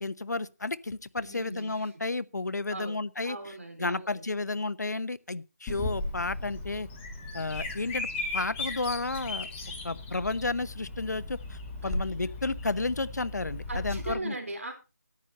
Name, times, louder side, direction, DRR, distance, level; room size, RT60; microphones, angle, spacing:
voice 1, 0.0-6.9 7.3-8.1 8.3-9.5 9.8-14.3, left 3 dB, 75° left, 0.9 m, -32 dB
voice 2, 1.2-1.7 2.7-3.0 3.2-4.2 11.8-11.9 13.7-14.7, right 2 dB, 50° right, 4.3 m, -39 dB
Bird vocalization bird call bird song, 5.7-14.1, left 2 dB, 5° left, 0.9 m, -36 dB
13.5 x 10.5 x 4.2 m
figure-of-eight pair, 175°, 9 cm